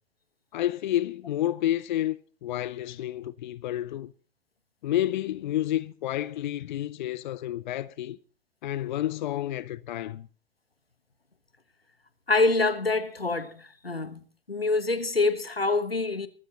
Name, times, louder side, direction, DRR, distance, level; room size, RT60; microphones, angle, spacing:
voice 1, 0.5-2.2 2.4-4.1 4.8-8.2 8.6-10.3, left 13 dB, 55° left, 0.6 m, -30 dB
voice 2, 12.3-14.2 14.5-16.3, left 3 dB, 90° left, 1.3 m, -25 dB
24.0 x 12.5 x 2.9 m
figure-of-eight pair, 100°, 29 cm